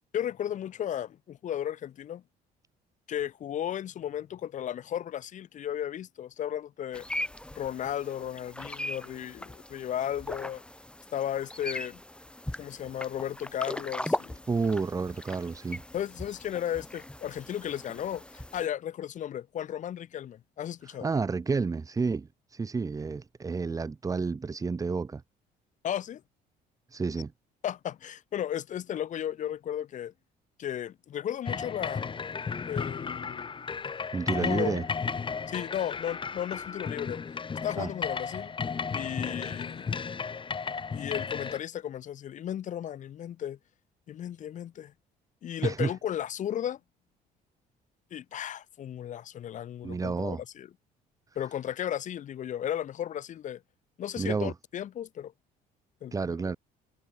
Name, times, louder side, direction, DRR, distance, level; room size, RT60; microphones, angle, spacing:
voice 1, 0.1-2.2 3.1-7.1 7.5-10.6 11.1-12.0 12.6-14.4 15.9-21.1 25.8-26.2 27.6-30.1 30.6-32.1 32.7-33.5 34.3-34.8 35.5-37.2 37.6-38.5 38.9-40.1 40.9-43.6 44.1-44.9 45.4-46.8 48.1-50.7 51.4-53.6 54.0-55.3 56.0-56.1 56.4-56.5, left 10 dB, 50° left, 0.8 m, -35 dB
sound 1, 6.9-18.7, left 1 dB, 5° left, 3.1 m, -39 dB
voice 2, 14.5-15.8 20.8-25.2 26.9-27.3 34.1-34.8 37.8-37.9 45.6-45.9 49.8-50.4 54.2-54.5 56.1-56.6, right 4 dB, 20° right, 0.8 m, -30 dB
sound 2, 31.4-41.6, left 5 dB, 30° left, 2.4 m, -34 dB
cardioid pair, 110°, 17 cm